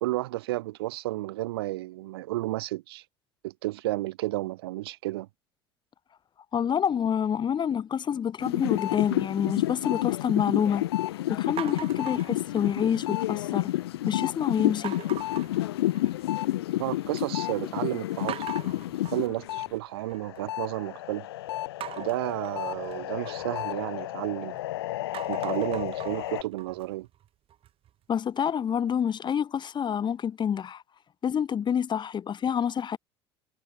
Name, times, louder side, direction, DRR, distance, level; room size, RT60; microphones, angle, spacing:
voice 1, 0.0-3.0 3.4-5.3 16.8-18.4 19.1-21.3 22.0-24.6 25.3-27.1, right 18 dB, 65° right, 1.7 m, -32 dB
voice 2, 6.5-10.8 11.3-13.7 14.0-15.0 28.1-30.8 31.2-33.0, left 8 dB, 35° left, 3.3 m, -27 dB
sound 1, 8.4-19.7 20.1-26.4, left 15 dB, 70° left, 1.8 m, -30 dB
sound 2, 11.6-13.1 13.4-14.0 14.8-16.4 16.7-17.3 17.6-17.7 18.3-20.4 21.8-24.6 25.0-27.9, right 11 dB, 45° right, 7.1 m, -42 dB
figure-of-eight pair, 65°, 14 cm